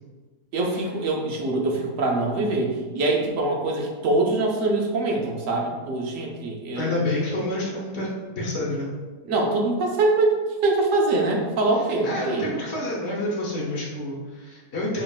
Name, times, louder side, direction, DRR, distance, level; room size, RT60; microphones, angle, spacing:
voice 1, 0.5-6.9 9.3-12.5, right 2 dB, 65° right, 0 dB, 0.9 m, -24 dB
voice 2, 6.7-8.1 8.4-8.9 12.0-15.0, left 1 dB, 50° left, -5 dB, 1.0 m, -28 dB
5.2 x 2.8 x 2.3 m, 1.4 s
omnidirectional pair, 1.6 m